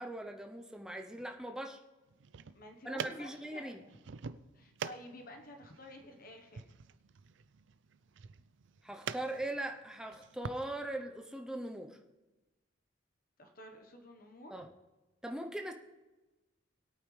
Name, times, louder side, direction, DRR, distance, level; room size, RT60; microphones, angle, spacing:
voice 1, 0.0-1.8 2.8-3.8 8.8-12.0 14.5-14.7 15.2-15.7, right 1 dB, 5° right, 3 dB, 0.7 m, -40 dB
sound 1, 2.1-10.6, right 6 dB, 65° right, 0.4 m, -46 dB
voice 2, 2.5-3.8 4.5-6.6 13.4-14.7, left 1 dB, 45° left, 4 dB, 1.1 m, -51 dB
20.0 x 8.8 x 3.3 m, 1.1 s
head